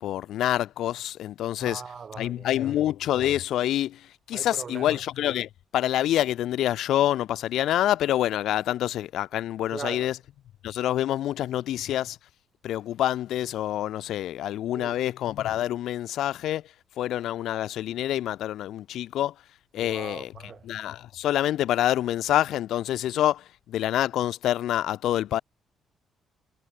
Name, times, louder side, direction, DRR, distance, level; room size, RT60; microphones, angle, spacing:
voice 1, 0.0-1.8 2.2-10.2 10.6-12.2 12.6-16.6 17.0-19.3 19.7-20.3 20.6-25.4, left 12 dB, 80° left, 0.3 m, -27 dB
voice 2, 1.6-2.8 4.3-5.0 9.7-10.2 14.7-15.0 19.8-20.7, right 6 dB, 45° right, 3.6 m, -40 dB
cardioid pair, 90°, 0 cm